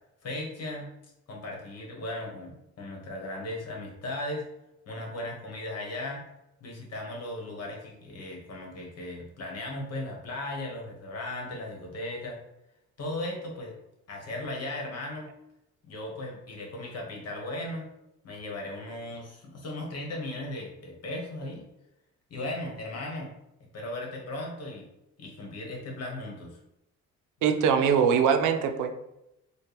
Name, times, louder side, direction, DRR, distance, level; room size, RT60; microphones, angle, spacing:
voice 1, 0.2-0.9 1.3-4.5 4.9-6.2 6.6-12.4 13.0-13.7 14.1-15.3 15.9-17.9 18.2-21.7 22.3-23.3 23.7-24.9 25.2-26.6, left 1 dB, 55° left, 0 dB, 1.3 m, -37 dB
voice 2, 27.4-29.0, right 7 dB, 80° right, 6 dB, 0.5 m, -23 dB
4.3 x 2.3 x 3.4 m, 0.87 s
cardioid pair, 90°, 30 cm